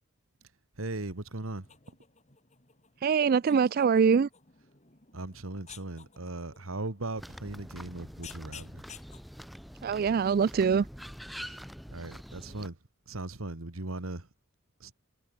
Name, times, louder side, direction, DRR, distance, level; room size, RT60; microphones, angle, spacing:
voice 1, 0.8-1.7 5.1-8.9 11.9-12.8 13.1-14.3 14.8-14.9, right 2 dB, 85° right, 1.9 m, -38 dB
sound 1, 0.9-9.2, left 7 dB, 35° left, 3.8 m, -54 dB
voice 2, 3.0-4.3 9.8-10.9 11.4-11.6, right 6 dB, 45° right, 0.3 m, -24 dB
sound 2, 7.2-12.7, equal, ahead, 1.7 m, -45 dB
head